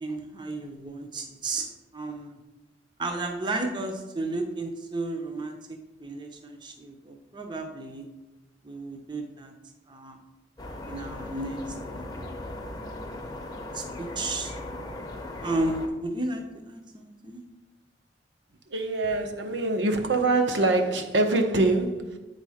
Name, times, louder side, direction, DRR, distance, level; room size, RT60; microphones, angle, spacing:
voice 1, 0.0-1.7 1.9-2.4 3.0-8.1 8.6-9.5 9.9-10.2 10.9-12.1 13.7-14.5 15.4-17.4, right 2 dB, 25° right, 3 dB, 0.6 m, -33 dB
sound 1, 10.6-15.9, left 1 dB, 20° left, 0.7 m, -38 dB
voice 2, 18.7-22.2, right 2 dB, 75° right, 4 dB, 0.8 m, -24 dB
8.4 x 4.1 x 4.9 m, 1.1 s
head